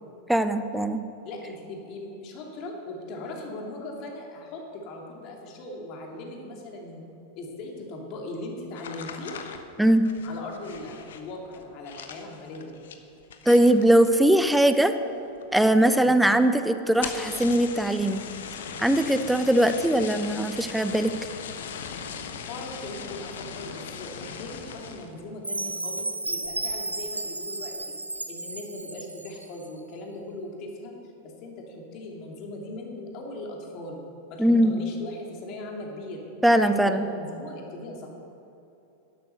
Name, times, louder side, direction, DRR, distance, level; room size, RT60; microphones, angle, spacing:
voice 1, 0.3-1.0 9.8-10.0 13.5-14.9 15.5-18.2 18.8-21.1 34.4-34.8 36.4-37.0, right 1 dB, 5° right, 10 dB, 0.7 m, -20 dB
voice 2, 1.2-7.0 7.3-9.3 10.2-12.7 15.9-16.1 22.4-27.8 28.3-30.9 31.2-34.0 34.3-36.2 36.6-38.1, left 2 dB, 40° left, 0 dB, 2.8 m, -39 dB
sound 1, 8.7-14.9 15.1-15.7 16.0-16.1 16.3-16.4 16.9-25.2 25.6-26.0 26.4-26.8, left 7 dB, 60° left, 1.1 m, -39 dB
Chime, 25.4-29.5, right 2 dB, 85° right, 0.6 m, -33 dB
12.0 x 11.0 x 6.8 m, 2.9 s
figure-of-eight pair, 90°, 0 cm